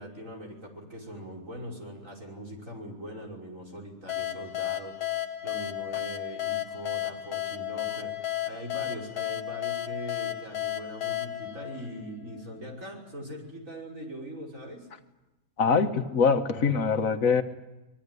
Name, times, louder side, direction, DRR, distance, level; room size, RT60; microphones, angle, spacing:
voice 1, 0.0-5.1 5.4-14.9, equal, 60° right, 1 dB, 6.1 m, -41 dB
sound 1, 4.1-12.5, left 13 dB, 85° left, 1.7 m, -33 dB
voice 2, 15.6-17.4, left 5 dB, 65° left, 8 dB, 1.7 m, -23 dB
24.5 x 21.5 x 9.9 m, 1.0 s
omnidirectional pair, 1.6 m